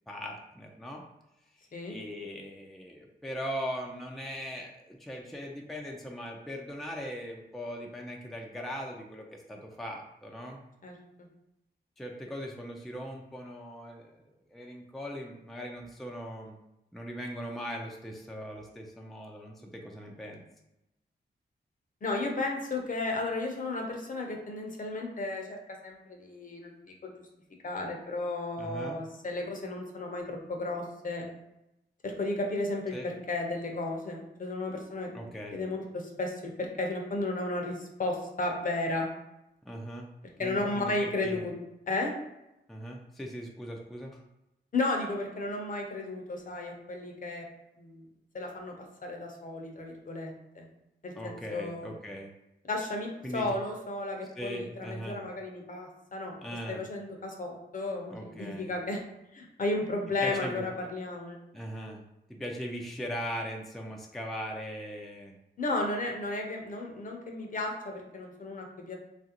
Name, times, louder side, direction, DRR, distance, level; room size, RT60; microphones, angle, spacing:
voice 1, 0.1-1.0 1.5-10.6 12.0-16.6 16.9-20.4 28.6-29.0 32.9-33.1 35.1-35.6 39.6-40.1 40.4-41.5 42.7-44.2 51.2-52.3 53.2-53.6 54.4-55.2 56.4-56.8 58.1-58.7 60.2-60.6 61.5-62.0 62.3-65.4, equal, ahead, 0 dB, 0.4 m, -40 dB
voice 2, 22.0-25.6 25.8-26.7 27.0-27.1 27.6-31.3 32.0-35.1 35.5-39.1 40.4-41.5 41.9-42.1 44.7-47.4 47.8-48.1 48.3-48.7 49.0-50.7 51.0-51.9 52.7-56.3 56.7-59.0 59.3-61.4 65.6-69.0, left 2 dB, 45° left, 1 dB, 0.7 m, -33 dB
2.9 x 2.5 x 2.9 m, 0.90 s
cardioid pair, 70°, 18 cm